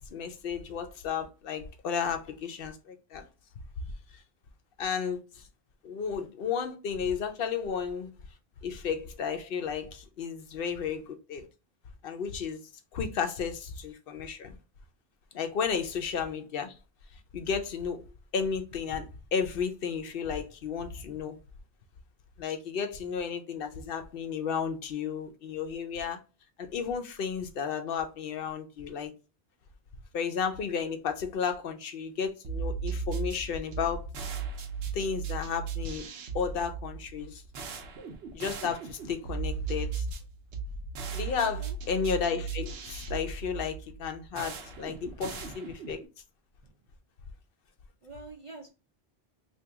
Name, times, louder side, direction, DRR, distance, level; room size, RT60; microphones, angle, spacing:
voice 1, 0.0-3.2 4.1-4.2 4.8-5.4 5.8-8.1 8.6-11.5 12.0-12.6 12.9-14.5 15.3-16.7 17.3-18.1 18.3-21.4 22.4-26.2 26.6-29.1 30.1-34.1 34.9-36.1 36.3-37.4 38.3-40.1 41.1-46.0, left 6 dB, 70° left, 0.7 m, -33 dB
sound 1, 32.4-46.1, right 5 dB, 80° right, 0.9 m, -37 dB
voice 2, 41.4-41.8 46.6-46.8 48.0-48.7, right 3 dB, 50° right, 0.4 m, -46 dB
2.9 x 2.6 x 3.4 m
omnidirectional pair, 1.0 m